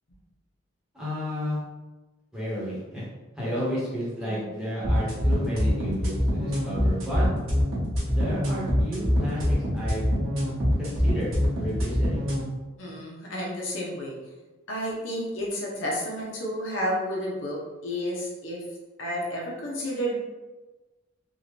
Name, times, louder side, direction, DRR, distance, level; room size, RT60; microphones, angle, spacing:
voice 1, 0.9-1.6 2.3-3.1 3.4-7.2 8.1-10.1 10.8-11.3 11.6-12.3, equal, 5° right, -9 dB, 1.2 m, -32 dB
sound 1, 4.8-12.4, equal, 90° right, 1.4 m, -24 dB
voice 2, 12.8-14.2 14.7-18.6 19.0-20.2, equal, 70° left, -3 dB, 0.9 m, -31 dB
3.7 x 2.4 x 3.2 m, 1.2 s
head